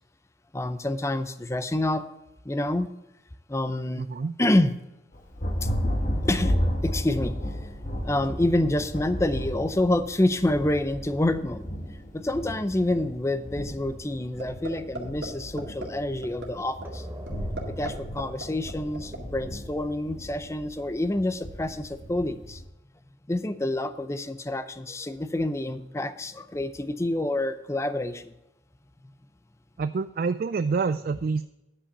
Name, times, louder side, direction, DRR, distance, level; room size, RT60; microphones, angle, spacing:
voice 1, 0.5-2.0 2.4-2.9 3.5-4.0 4.4-4.8 5.6-5.7 6.3-7.4 8.0-11.7 12.1-17.1 17.8-22.6 23.3-28.3, left 1 dB, 15° left, 11 dB, 0.5 m, -27 dB
voice 2, 4.0-4.4 29.8-31.4, right 4 dB, 55° right, 11 dB, 0.3 m, -27 dB
Thunder, 5.1-22.7, equal, 45° left, 1.6 m, -33 dB
sound 1, 14.4-14.7 14.9-15.3 15.6-15.8 16.2-16.5 16.8-16.9 17.3-17.9 18.2-19.2, right 2 dB, 80° right, 2.0 m, -35 dB
sound 2, 16.8-22.2, equal, 10° right, 1.0 m, -46 dB
10.0 x 5.6 x 6.7 m, 0.94 s
head